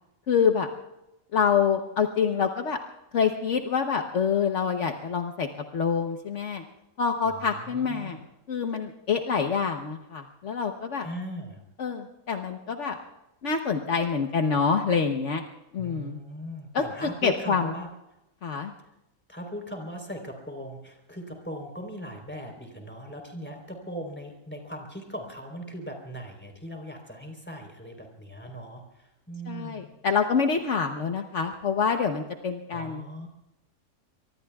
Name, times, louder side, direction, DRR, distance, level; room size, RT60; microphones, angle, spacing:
voice 1, 0.3-0.7 1.3-2.8 3.1-6.6 7.0-8.2 8.5-11.1 11.8-13.0 13.4-15.4 15.7-16.2 16.7-17.7 18.4-18.7 29.5-33.0, left 6 dB, 60° left, 5 dB, 1.3 m, -26 dB
voice 2, 7.2-8.2 11.0-11.6 15.8-17.9 19.3-29.9 32.7-33.3, equal, 10° left, 2 dB, 3.8 m, -39 dB
24.5 x 24.0 x 2.4 m, 0.93 s
omnidirectional pair, 1.4 m